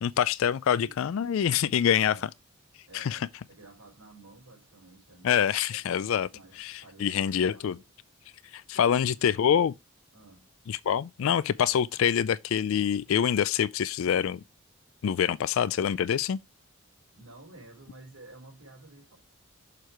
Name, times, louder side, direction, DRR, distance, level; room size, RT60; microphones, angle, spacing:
voice 1, 0.0-2.1 2.9-3.2 5.2-6.3 6.6-7.8 8.5-9.7 10.7-14.4 15.0-16.4, left 8 dB, 65° left, 0.3 m, -25 dB
voice 2, 1.9-2.3 2.9-5.4 5.7-7.9 8.7-9.1 10.1-10.5 17.1-19.2, right 2 dB, 80° right, 3.9 m, -52 dB
6.8 x 4.5 x 4.6 m
head